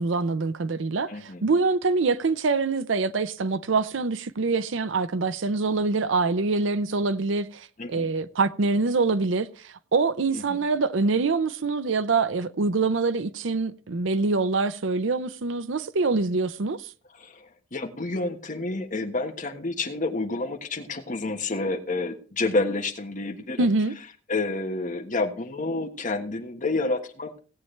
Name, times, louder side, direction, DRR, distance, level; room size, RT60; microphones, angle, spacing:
voice 1, 0.0-16.9 23.6-23.9, right 3 dB, 70° right, 0.6 m, -25 dB
voice 2, 1.1-1.4 7.8-8.1 10.3-10.6 17.2-23.7 24.3-27.4, left 2 dB, 40° left, 1.3 m, -29 dB
17.5 x 8.6 x 3.2 m
head